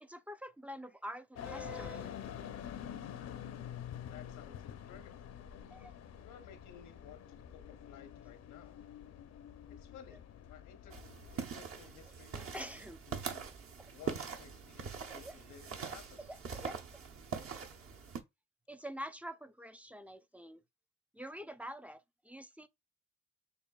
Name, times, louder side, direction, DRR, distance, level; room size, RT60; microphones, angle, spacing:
voice 1, 0.0-2.1 5.7-5.9 12.5-13.0 13.8-14.0 15.2-15.4 16.2-16.8 17.4-17.6 18.7-20.6 21.1-22.7, equal, 5° right, 0.4 m, -46 dB
sound 1, 1.4-11.4, left 9 dB, 60° left, 0.6 m, -47 dB
voice 2, 4.1-5.3 6.2-8.8 9.7-11.0 11.3-13.5 13.9-16.3, left 8 dB, 90° left, 0.9 m, -56 dB
sound 2, 10.9-18.2, right 6 dB, 50° right, 0.8 m, -43 dB
6.6 x 2.6 x 2.3 m
cardioid pair, 90°, 30 cm